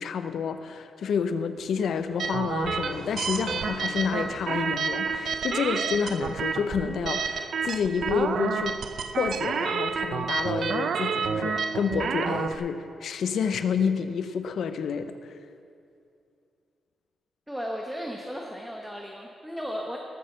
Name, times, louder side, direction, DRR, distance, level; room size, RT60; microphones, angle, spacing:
voice 1, 0.0-8.8 9.2-15.4, left 6 dB, 70° left, 10 dB, 0.7 m, -29 dB
sound 1, 1.6-10.5, left 2 dB, 45° left, 3.7 m, -47 dB
sound 2, 2.2-12.5, right 6 dB, 60° right, 0.6 m, -29 dB
voice 2, 17.5-20.0, equal, 5° right, 0 dB, 1.1 m, -35 dB
19.5 x 6.6 x 6.6 m, 2.4 s
cardioid pair, 130°, 0 cm